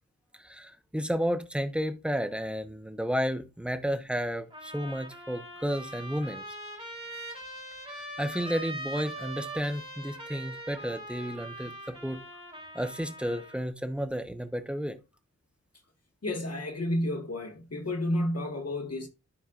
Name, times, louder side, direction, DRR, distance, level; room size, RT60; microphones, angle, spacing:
voice 1, 0.4-6.4 8.2-12.2 12.7-15.0, equal, 5° right, 0.9 m, -32 dB
Trumpet, 4.5-13.7, right 1 dB, 20° right, 3.0 m, -42 dB
voice 2, 16.2-19.1, left 1 dB, 50° left, 1.8 m, -31 dB
13.0 x 4.3 x 2.5 m
wide cardioid pair, 85°, 31 cm